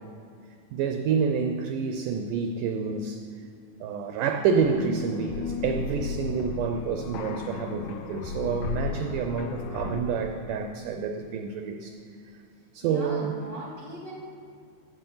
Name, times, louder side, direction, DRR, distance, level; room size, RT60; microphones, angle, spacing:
voice 1, 0.7-3.2 3.8-12.0 12.7-13.4, right 6 dB, 85° right, 6 dB, 1.8 m, -28 dB
sound 1, 4.6-10.0, left 5 dB, 80° left, 1.8 m, -34 dB
voice 2, 12.8-14.1, right 1 dB, 65° left, -4 dB, 0.5 m, -40 dB
15.5 x 7.8 x 5.6 m, 2.3 s
omnidirectional pair, 4.4 m